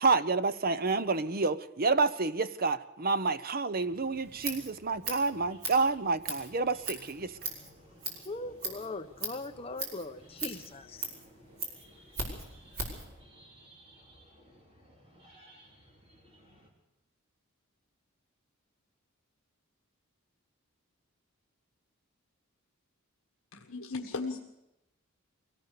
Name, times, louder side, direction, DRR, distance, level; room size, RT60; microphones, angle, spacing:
voice 1, 0.0-7.3, right 4 dB, 40° right, 13 dB, 0.8 m, -29 dB
sound 1, 3.8-16.7, equal, 25° right, 4.1 m, -58 dB
Scissors, 4.1-13.1, right 2 dB, 70° right, 5.8 m, -40 dB
voice 2, 8.2-11.2, left 2 dB, 25° left, 5 dB, 1.1 m, -40 dB
voice 3, 23.5-24.4, left 3 dB, 70° left, 2 dB, 1.5 m, -36 dB
23.5 x 18.0 x 6.8 m, 0.90 s
head